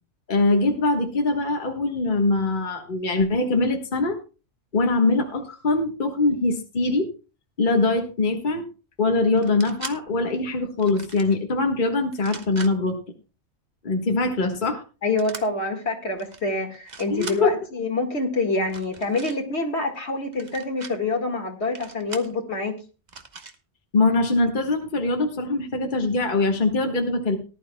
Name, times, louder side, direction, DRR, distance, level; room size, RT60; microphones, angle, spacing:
voice 1, 0.3-4.2 4.7-7.1 7.6-8.7 9.0-13.0 13.8-14.8 17.1-17.5 23.9-27.4, left 3 dB, 40° left, 2 dB, 1.5 m, -22 dB
sound 1, 9.4-10.0 10.8-11.3 12.1-12.7 15.2-15.4 16.2-16.4 16.7-17.4 18.6-19.4 20.3-20.9 21.7-22.3 23.1-23.5, right 4 dB, 35° right, 1.1 m, -39 dB
voice 2, 15.0-22.7, left 3 dB, 60° left, 4 dB, 2.1 m, -26 dB
19.0 x 11.5 x 2.2 m, 0.33 s
omnidirectional pair, 1.3 m